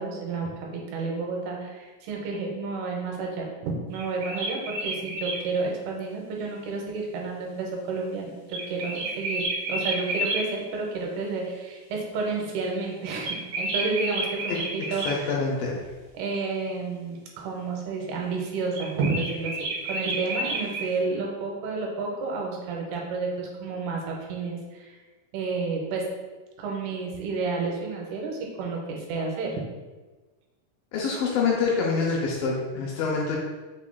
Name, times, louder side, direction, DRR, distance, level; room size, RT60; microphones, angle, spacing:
voice 1, 0.0-15.1 16.1-19.5 19.9-25.0 25.3-26.1 26.6-29.6, right 4 dB, 90° right, 0 dB, 2.7 m, -31 dB
sound 1, 3.9-5.4 8.5-10.4 13.2-15.2 18.7-20.9, right 2 dB, 60° right, 1.9 m, -30 dB
voice 2, 14.5-15.8 30.9-33.4, left 4 dB, 80° left, -3 dB, 2.2 m, -26 dB
5.6 x 3.6 x 2.2 m, 1.2 s
omnidirectional pair, 4.5 m